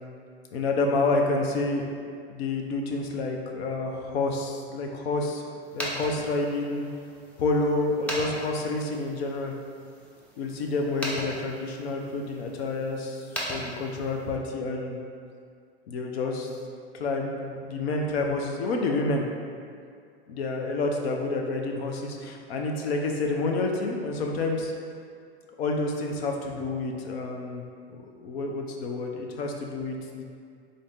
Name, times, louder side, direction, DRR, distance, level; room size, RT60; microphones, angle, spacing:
voice 1, 0.5-1.9 2.3-6.9 7.4-9.5 10.4-15.0 15.9-16.5 16.9-19.2 20.3-24.7 25.6-27.6 27.9-30.2, left 3 dB, 70° left, 1 dB, 0.7 m, -29 dB
sound 1, 5.6-14.4, equal, 5° left, 0.5 m, -39 dB
3.8 x 2.7 x 3.5 m, 2.3 s
hypercardioid pair, 120°, 32 cm